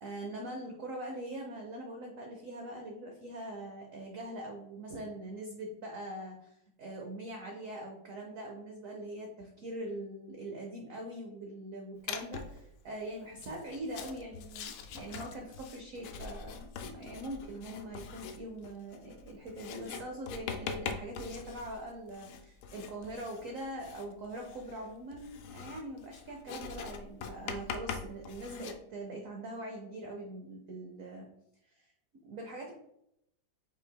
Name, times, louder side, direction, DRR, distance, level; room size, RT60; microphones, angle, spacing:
voice 1, 0.0-31.3 31.7-31.9 32.2-32.7, right 1 dB, 75° right, 1 dB, 0.7 m, -42 dB
Writing, 12.1-12.6 13.3-28.7, left 6 dB, 85° left, 1.4 m, -43 dB
5.3 x 4.2 x 2.3 m, 0.77 s
omnidirectional pair, 2.2 m